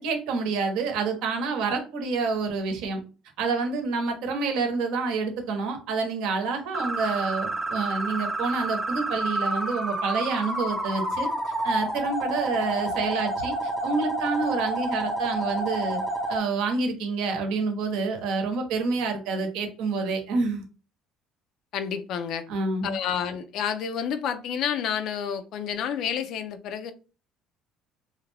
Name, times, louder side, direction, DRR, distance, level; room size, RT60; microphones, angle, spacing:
voice 1, 0.0-3.0 3.4-11.3 11.6-13.5 13.8-16.0 16.3-20.6 22.5-23.0, right 4 dB, 75° right, 0.8 m, -28 dB
sound 1, 6.7-16.4, right 1 dB, 5° right, 0.4 m, -29 dB
voice 2, 21.7-22.4 22.8-26.9, left 8 dB, 60° left, 0.4 m, -29 dB
2.4 x 2.1 x 3.2 m
cardioid pair, 110°, 0 cm